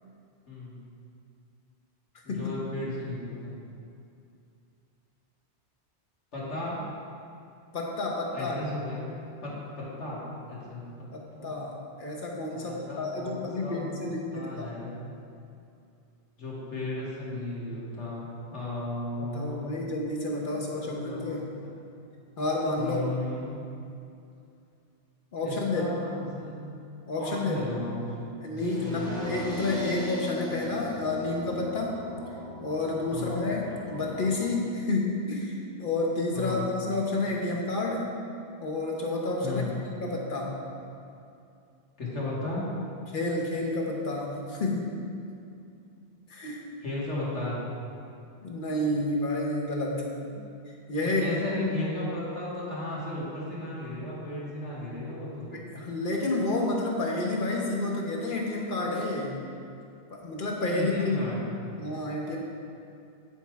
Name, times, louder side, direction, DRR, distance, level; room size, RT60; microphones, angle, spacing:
voice 1, 0.5-0.8 2.2-3.5 6.3-6.8 8.3-9.2 9.4-10.2 10.5-11.6 12.5-15.1 16.4-19.7 20.4-21.3 21.6-21.9 22.8-23.6 25.4-26.7 27.2-28.4 28.8-29.2 33.1-33.5 36.3-36.7 39.4-39.8 42.0-42.7 46.8-47.6 51.0-55.5 60.7-61.5, left 2 dB, 90° left, -8 dB, 2.2 m, -35 dB
voice 2, 7.7-8.5 11.4-14.7 19.2-21.6 22.4-23.1 25.3-25.9 26.2-26.3 27.1-27.7 28.4-32.0 32.6-38.1 38.6-40.6 43.1-45.0 46.3-46.7 48.4-50.1 50.9-51.4 55.5-59.4 60.1-61.4 61.8-62.4, left 2 dB, 50° left, -1 dB, 1.1 m, -30 dB
sound 1, 28.6-34.6, left 2 dB, 5° left, 1.1 m, -38 dB
9.3 x 4.2 x 4.6 m, 2.5 s
omnidirectional pair, 1.2 m